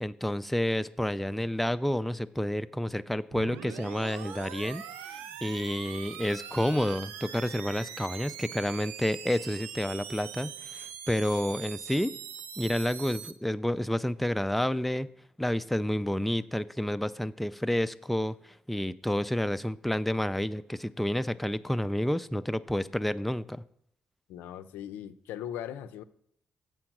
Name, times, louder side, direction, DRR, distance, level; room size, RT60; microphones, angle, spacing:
voice 1, 0.0-4.8 5.4-12.1 12.6-15.1 15.4-23.6, left 1 dB, 5° left, 12 dB, 0.4 m, -30 dB
sound 1, 3.3-13.3, right 8 dB, 90° right, 0.5 m, -42 dB
voice 2, 24.3-26.0, left 10 dB, 85° left, 11 dB, 0.4 m, -39 dB
7.7 x 4.7 x 5.9 m, 0.72 s
supercardioid pair, 55°, 3 cm